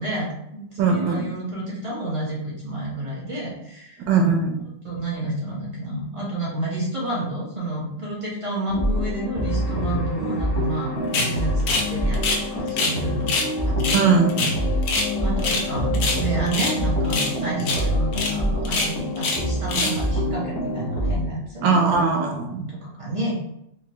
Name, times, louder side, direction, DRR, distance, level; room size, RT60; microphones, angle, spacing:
voice 1, 0.0-4.0 4.8-13.3 13.6-14.0 15.2-21.6 22.0-22.4 22.7-23.4, right 2 dB, 25° right, -6 dB, 0.9 m, -30 dB
voice 2, 0.8-1.2 4.1-4.5 13.9-14.5 21.6-22.6, right 4 dB, 85° right, 2 dB, 1.4 m, -20 dB
sound 1, 8.7-21.1, equal, 30° left, 0.4 m, -26 dB
sound 2, 11.1-11.3 11.7-11.9 12.1-13.0 13.3-13.5 13.8-15.1 15.4-15.7 15.9-16.8 17.1-17.3 17.6-17.8 18.1-18.3 18.6-19.4 19.7-20.0, left 3 dB, 65° left, 1.1 m, -24 dB
4.5 x 2.2 x 2.9 m, 0.78 s
omnidirectional pair, 1.9 m